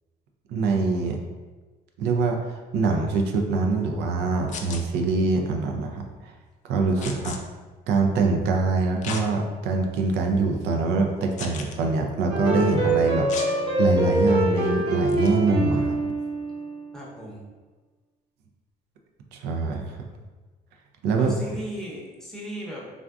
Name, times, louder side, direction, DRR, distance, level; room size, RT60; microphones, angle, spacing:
voice 1, 0.5-1.2 2.0-2.4 2.7-6.3 6.6-7.3 7.9-16.1 19.3-20.0 21.0-21.3, right 3 dB, 80° right, 2 dB, 0.4 m, -24 dB
sound 1, 4.5-4.8 7.0-7.4 9.0-9.2 9.9-10.0 11.4-11.8 13.3-13.5 15.1-15.3, left 5 dB, 45° left, 0.4 m, -35 dB
voice 2, 7.0-7.4 16.9-17.4 21.2-22.9, equal, 5° left, -5 dB, 0.7 m, -37 dB
sound 2, 12.3-16.9, right 1 dB, 30° right, 0.8 m, -24 dB
3.4 x 2.4 x 2.3 m, 1.3 s
cardioid pair, 110°, 17 cm